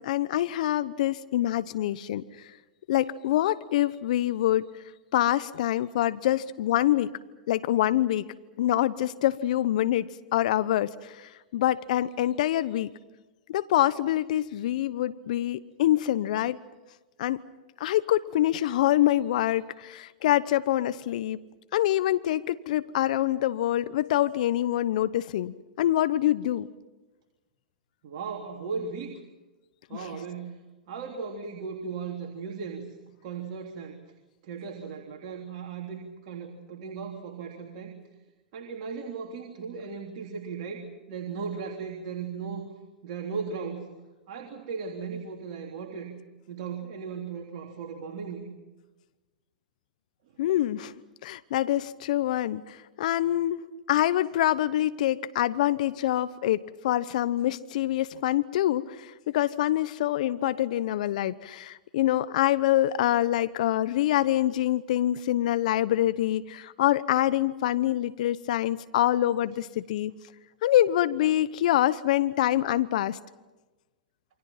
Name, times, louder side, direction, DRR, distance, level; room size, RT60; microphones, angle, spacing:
voice 1, 0.0-2.2 2.9-4.6 5.1-7.1 7.5-8.2 8.6-10.9 11.5-12.9 13.5-16.6 17.2-17.4 17.8-21.4 21.7-26.7 50.4-50.9 51.2-53.6 53.9-70.1 70.6-73.2, left 13 dB, 65° left, 14 dB, 0.9 m, -25 dB
voice 2, 28.0-29.2 29.9-30.6 30.9-34.0 34.4-37.9 38.5-42.7 43.0-43.9 44.3-46.1 46.5-48.5, right 5 dB, 55° right, 1 dB, 3.4 m, -37 dB
28.5 x 25.0 x 5.8 m, 1.1 s
hypercardioid pair, 110°, 4 cm